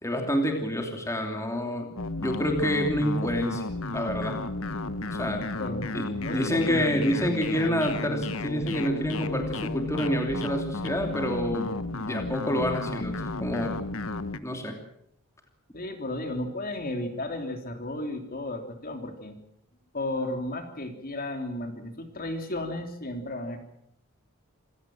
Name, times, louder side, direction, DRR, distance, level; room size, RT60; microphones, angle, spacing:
voice 1, 0.0-3.6 3.9-4.4 5.1-5.4 5.9-6.1 6.3-13.2 13.4-13.8 14.4-14.8, equal, 15° left, 3 dB, 2.9 m, -28 dB
sound 1, 2.0-14.4, left 2 dB, 65° left, 1.2 m, -33 dB
voice 2, 5.6-7.2 15.7-19.4 19.9-23.6, left 1 dB, 40° left, 6 dB, 3.4 m, -34 dB
27.5 x 16.5 x 7.6 m, 0.74 s
head